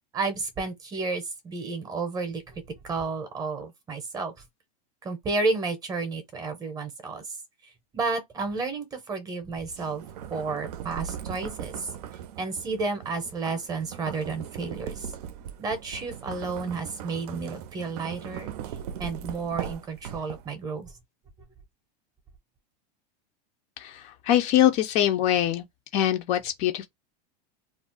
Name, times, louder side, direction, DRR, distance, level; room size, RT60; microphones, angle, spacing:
voice 1, 0.1-4.3 5.0-7.2 7.9-10.0 10.3-11.9 12.4-15.1 15.6-18.5 19.0-20.9, right 3 dB, 20° right, 0.7 m, -31 dB
sound 1, 9.7-20.7, right 9 dB, 75° right, 0.5 m, -39 dB
voice 2, 23.8-25.7 25.9-26.9, left 12 dB, 35° left, 0.4 m, -23 dB
2.4 x 2.0 x 3.7 m
supercardioid pair, 150°, 21 cm